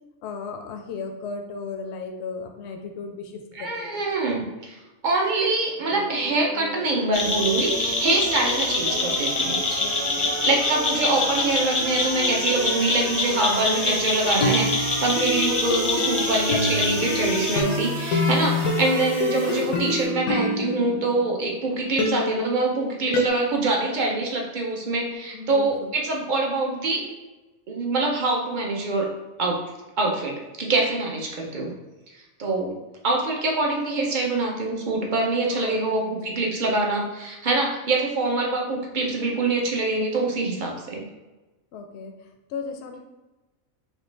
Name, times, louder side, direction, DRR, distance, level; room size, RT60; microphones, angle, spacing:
voice 1, 0.2-4.0 9.8-10.3 25.3-25.9 35.4-36.4 41.7-43.0, left 5 dB, 65° left, 4 dB, 0.8 m, -36 dB
voice 2, 3.6-4.8 5.0-9.6 10.2-27.0 27.7-29.1 29.4-29.6 30.0-31.7 32.4-32.8 33.0-41.0, right 2 dB, 45° right, 0 dB, 0.7 m, -24 dB
sound 1, 5.9-20.1, equal, 70° right, 1.6 m, -35 dB
sound 2, 7.1-17.6, left 2 dB, 30° left, 0.6 m, -26 dB
sound 3, 14.3-21.5 22.0-23.3, left 2 dB, 85° left, 1.1 m, -27 dB
5.1 x 2.4 x 3.2 m, 1.1 s
omnidirectional pair, 1.5 m